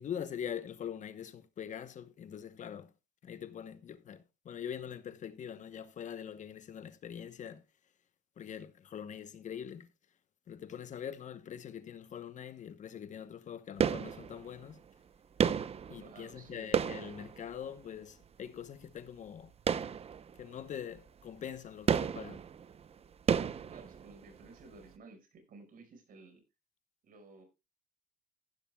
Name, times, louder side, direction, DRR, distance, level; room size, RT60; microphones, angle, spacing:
voice 1, 0.0-2.9 3.2-7.6 8.4-9.9 10.5-14.8 15.9-19.5 20.4-22.4, left 8 dB, 45° left, 1.0 m, -43 dB
sound 1, 13.8-14.7 15.4-18.0 19.6-20.6 21.0-21.1 21.9-24.5 24.7-24.8, right 7 dB, 35° right, 0.8 m, -33 dB
voice 2, 16.0-16.8 23.7-26.4 27.0-27.4, right 3 dB, 55° right, 5.2 m, -54 dB
15.0 x 11.5 x 2.3 m
cardioid pair, 110°, 17 cm